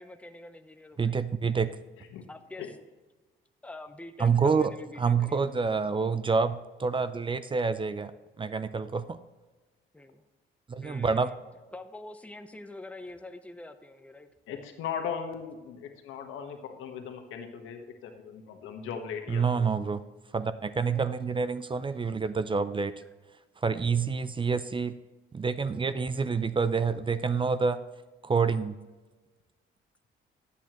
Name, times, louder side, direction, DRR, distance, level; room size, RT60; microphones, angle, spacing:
voice 1, 0.0-1.2 2.3-2.7 3.6-5.6 9.9-10.2 10.8-11.3 11.7-14.3 20.9-21.1, left 2 dB, 5° left, 8 dB, 0.8 m, -45 dB
voice 2, 1.0-1.7 4.2-4.7 5.0-8.1 8.4-9.2 10.7-11.3 19.3-20.0 20.3-22.9 23.6-24.9 25.3-27.8 28.2-28.7, right 5 dB, 25° right, 13 dB, 0.5 m, -27 dB
voice 3, 14.5-19.7, left 7 dB, 90° left, 4 dB, 1.4 m, -38 dB
12.5 x 8.4 x 3.1 m, 1.2 s
cardioid pair, 90°, 20 cm